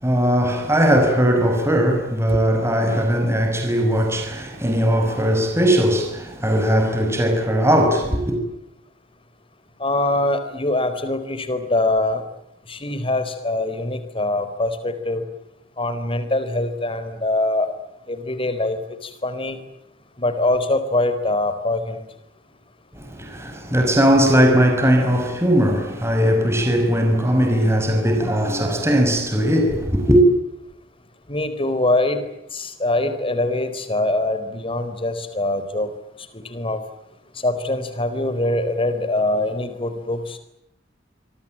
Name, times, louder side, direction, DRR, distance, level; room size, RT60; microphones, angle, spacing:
voice 1, 0.0-8.4 22.9-30.2, equal, 15° right, 5.5 m, -19 dB
voice 2, 9.8-12.2 12.7-15.2 15.8-17.7 18.1-19.6 20.2-22.0 31.3-32.2 32.5-35.9 36.5-36.8 37.4-40.4, left 2 dB, 25° left, 4.3 m, -23 dB
27.5 x 23.0 x 8.9 m
head